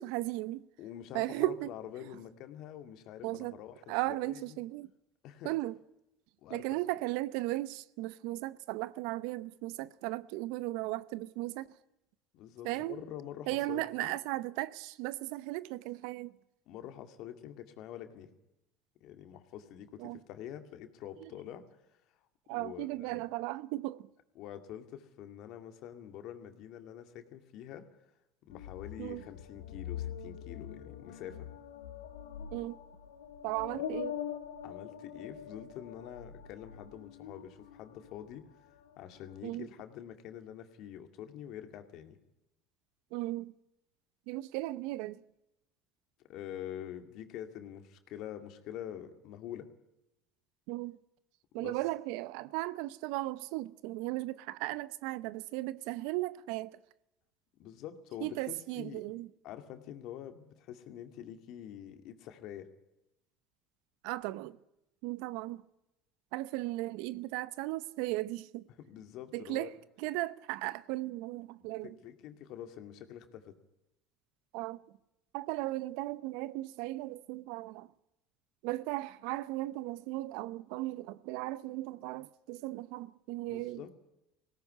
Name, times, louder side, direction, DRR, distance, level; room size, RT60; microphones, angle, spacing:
voice 1, 0.0-0.6 1.1-1.7 3.2-3.6 3.9-4.9 5.4-5.7 6.5-11.8 12.6-13.0 13.5-16.3 20.0-20.2 22.5-24.1 29.0-29.2 32.5-32.8 33.4-34.2 39.4-39.7 43.1-43.5 44.3-45.2 50.7-51.0 51.5-56.8 58.2-59.3 64.0-64.6 65.0-65.6 66.3-68.6 69.3-69.7 70.0-71.9 74.5-74.8 75.3-77.9 78.6-83.9, right 18 dB, 70° right, 0.7 m, -36 dB
voice 2, 0.8-4.6 5.2-5.5 6.4-6.7 12.3-14.2 16.7-18.3 19.0-21.7 22.5-23.2 24.4-27.9 28.5-31.5 33.7-33.8 34.6-38.4 39.0-42.2 46.3-49.7 51.6-51.8 57.6-59.0 59.4-62.7 68.7-69.7 71.6-73.6 83.5-83.9, left 10 dB, 60° left, 2.3 m, -46 dB
sound 1, 28.5-38.4 38.7-39.4, left 8 dB, 85° left, 1.6 m, -43 dB
19.5 x 17.5 x 9.7 m
hypercardioid pair, 75°, 0 cm